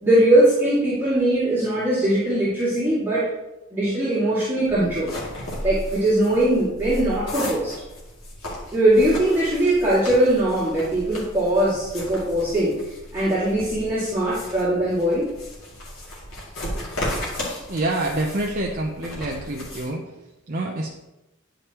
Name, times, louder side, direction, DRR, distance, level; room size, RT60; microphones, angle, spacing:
voice 1, 0.0-3.3 3.7-5.1 5.6-7.7 8.7-12.7 13.1-15.3, right 1 dB, 10° right, -13 dB, 2.2 m, -20 dB
sound 1, 4.7-19.9, left 1 dB, 65° left, 2.3 m, -35 dB
voice 2, 17.7-20.9, right 2 dB, 40° right, -1 dB, 0.7 m, -27 dB
10.0 x 5.1 x 3.0 m, 0.97 s
head